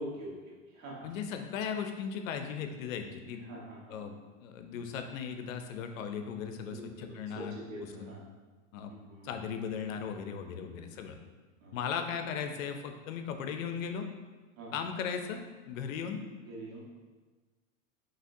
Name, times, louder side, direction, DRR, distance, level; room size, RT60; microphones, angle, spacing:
voice 1, 0.0-1.1 3.4-4.1 6.6-8.2 8.9-9.3 10.5-11.0 11.6-11.7 14.6-14.7 16.4-16.8, right 1 dB, 80° right, -4 dB, 1.5 m, -45 dB
voice 2, 1.0-3.5 3.9-4.1 4.4-8.1 8.7-8.9 9.2-11.2 11.7-14.1 14.7-16.2, left 7 dB, 85° left, 6 dB, 0.6 m, -37 dB
5.5 x 2.8 x 2.7 m, 1.3 s
supercardioid pair, 165°, 39 cm